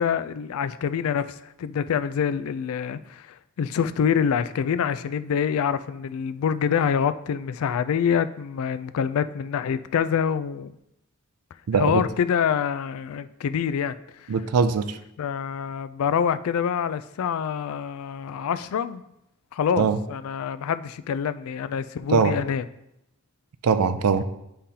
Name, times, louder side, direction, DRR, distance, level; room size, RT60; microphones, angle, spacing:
voice 1, 0.0-10.7 11.7-14.3 15.2-19.0 19.5-22.6, left 7 dB, 65° left, 14 dB, 0.3 m, -26 dB
voice 2, 11.7-12.0 14.3-15.0 19.8-20.0 22.1-22.3 23.6-24.2, right 5 dB, 75° right, 11 dB, 0.4 m, -21 dB
9.8 x 3.7 x 2.8 m, 0.83 s
head